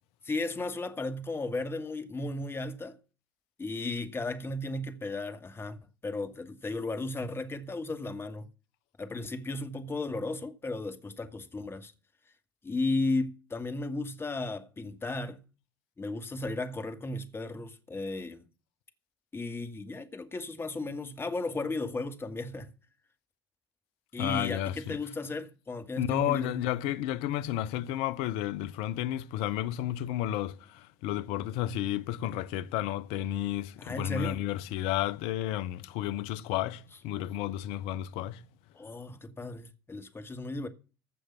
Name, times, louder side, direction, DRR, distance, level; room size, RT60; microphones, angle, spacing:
voice 1, 0.2-3.0 3.6-8.5 9.0-11.9 12.6-15.4 16.0-18.4 19.3-22.7 24.1-26.6 33.8-34.4 38.7-40.7, left 2 dB, 20° left, 2.3 m, -35 dB
voice 2, 24.2-25.0 26.0-38.4, left 13 dB, 55° left, 0.8 m, -32 dB
15.5 x 6.5 x 5.7 m
figure-of-eight pair, 60°, 12 cm